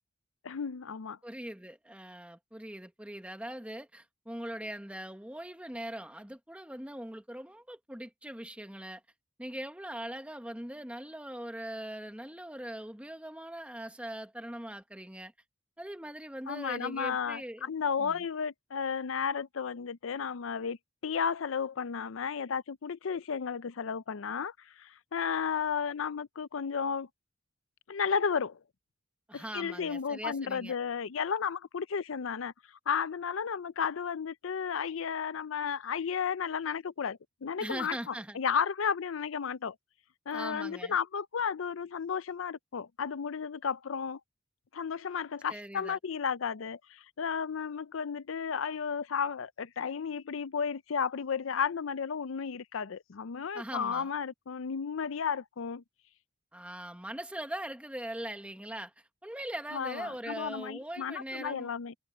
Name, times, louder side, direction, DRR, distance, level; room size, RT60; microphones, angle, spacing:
voice 1, 0.4-1.2 16.5-20.8 21.0-27.1 27.9-28.6 29.3-32.5 32.9-39.8 40.3-44.2 44.7-55.8 59.7-62.0, left 6 dB, 80° left, 0.5 m, -33 dB
voice 2, 1.2-9.0 9.4-15.3 15.8-17.7 18.0-18.2 29.3-30.8 37.6-38.4 40.3-40.9 45.5-46.0 53.5-54.1 56.5-58.9 59.2-61.7, right 1 dB, 5° right, 1.5 m, -41 dB
head